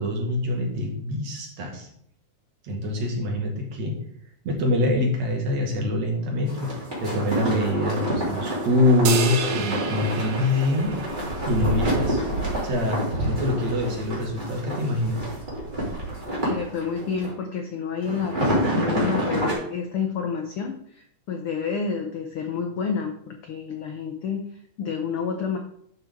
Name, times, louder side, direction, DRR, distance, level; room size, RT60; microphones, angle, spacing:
voice 1, 0.0-1.9 2.6-4.0 4.4-10.9 11.5-12.4 12.6-15.3, left 1 dB, 60° right, 0 dB, 3.0 m, -25 dB
sound 1, 6.5-17.3 18.0-19.5, equal, 15° right, 3.2 m, -28 dB
sound 2, 9.0-11.6, right 5 dB, 80° right, 1.1 m, -30 dB
voice 2, 16.4-24.4 24.8-25.6, left 6 dB, 75° left, 4 dB, 1.3 m, -29 dB
11.5 x 6.6 x 3.7 m, 0.68 s
omnidirectional pair, 3.6 m